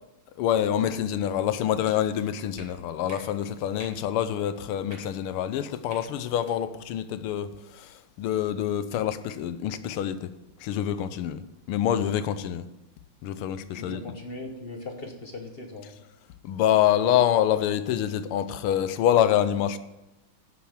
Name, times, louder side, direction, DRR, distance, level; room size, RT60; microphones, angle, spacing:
voice 1, 0.4-10.3 10.6-12.7 13.2-14.0 16.4-19.8, left 10 dB, 80° left, 1.5 m, -26 dB
sound 1, 1.8-2.0 2.5-2.7 3.1-3.2 3.8-4.0 4.8-5.0 5.9-6.0 6.4-6.5, right 1 dB, 10° right, 2.6 m, -46 dB
voice 2, 13.8-15.9, left 2 dB, 35° left, 1.2 m, -39 dB
11.5 x 6.3 x 7.4 m
omnidirectional pair, 2.4 m